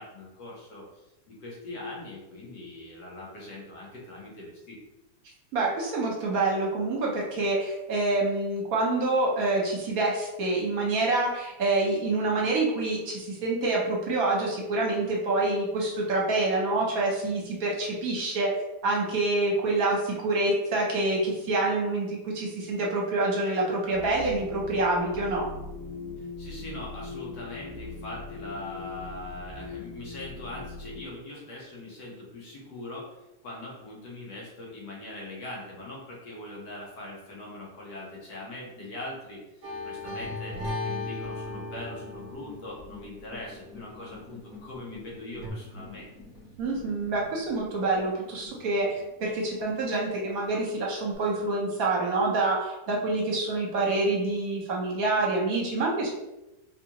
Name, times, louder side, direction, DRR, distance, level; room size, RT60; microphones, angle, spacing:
voice 1, 0.0-4.8 26.4-33.1 33.4-46.1, left 2 dB, 90° left, -4 dB, 1.7 m, -41 dB
voice 2, 5.5-18.5 18.8-25.4 46.6-56.1, right 2 dB, 65° right, -2 dB, 1.2 m, -27 dB
sound 1, 23.9-31.1, left 4 dB, 75° left, 1.3 m, -40 dB
sound 2, 39.6-44.5 45.4-45.5, left 2 dB, 50° right, 0.8 m, -37 dB
sound 3, 41.4-51.1, left 2 dB, 5° left, 0.6 m, -51 dB
4.1 x 2.4 x 2.9 m, 0.95 s
omnidirectional pair, 1.8 m